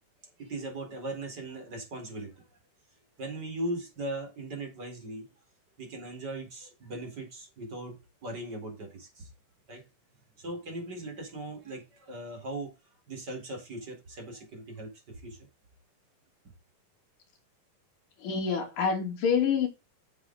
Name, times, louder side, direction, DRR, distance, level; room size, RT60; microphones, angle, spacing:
voice 1, 0.2-2.3 3.2-5.3 5.8-9.3 9.7-9.8 10.4-12.7 13.1-15.4, right 1 dB, 30° right, 4.3 m, -39 dB
voice 2, 18.2-19.7, left 6 dB, 65° left, 4.4 m, -27 dB
10.5 x 7.3 x 3.8 m
omnidirectional pair, 4.1 m